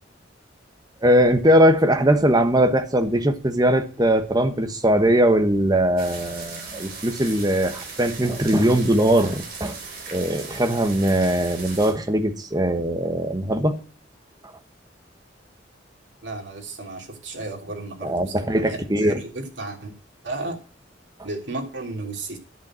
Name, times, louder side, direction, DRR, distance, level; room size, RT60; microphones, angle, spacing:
voice 1, 1.0-9.8 10.1-13.8 18.0-19.2, right 1 dB, 20° right, 1.2 m, -20 dB
sound 1, 6.0-11.9, right 4 dB, 50° right, 4.2 m, -38 dB
voice 2, 16.2-19.9 20.2-20.6 21.2-22.4, right 2 dB, 85° right, 3.2 m, -33 dB
10.5 x 6.9 x 7.5 m
head